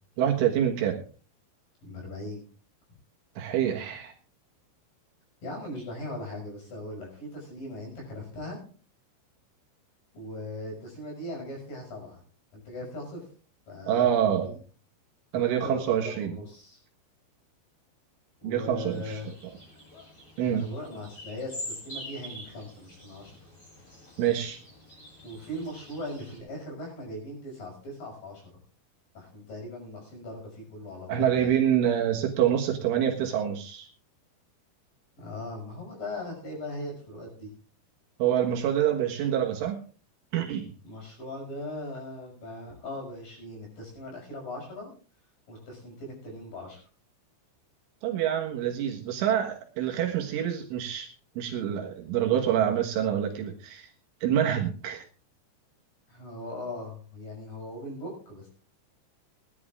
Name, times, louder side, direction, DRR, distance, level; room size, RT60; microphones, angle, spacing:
voice 1, 0.2-1.0 3.4-4.1 13.9-14.6 15.3-16.3 18.4-19.2 20.4-20.7 24.2-24.6 31.1-33.9 38.2-39.8 40.3-40.7 48.0-51.1 51.4-53.9 54.2-55.0, right 10 dB, 75° right, 1 dB, 3.8 m, -26 dB
voice 2, 1.8-2.4 5.4-8.6 10.1-12.2 12.5-13.3 13.7-14.6 15.3-16.8 18.4-19.3 20.4-23.3 25.2-28.6 29.1-31.5 35.2-37.5 40.8-44.9 45.5-46.8 56.1-58.5, left 1 dB, 45° left, 0 dB, 7.5 m, -39 dB
sound 1, 18.9-26.4, equal, 20° left, 5.5 m, -45 dB
18.5 x 11.5 x 3.7 m, 0.38 s
omnidirectional pair, 5.8 m